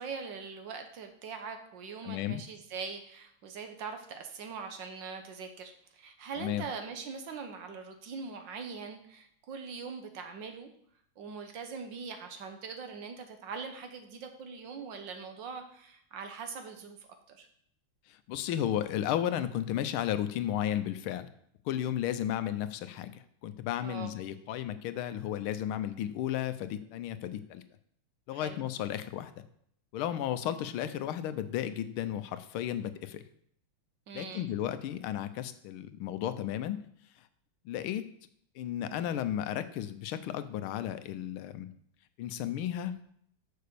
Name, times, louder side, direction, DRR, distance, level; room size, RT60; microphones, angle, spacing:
voice 1, 0.0-10.7 11.2-17.5 23.8-24.1 28.3-28.6 34.1-34.5, right 5 dB, 65° right, 6 dB, 1.5 m, -42 dB
voice 2, 2.0-2.4 6.4-6.6 18.1-21.3 21.6-27.6 28.3-29.3 29.9-33.2 34.1-36.8 37.6-38.1 38.5-41.7 42.2-42.9, left 11 dB, 85° left, 11 dB, 1.5 m, -34 dB
6.7 x 5.2 x 6.7 m, 0.66 s
omnidirectional pair, 2.3 m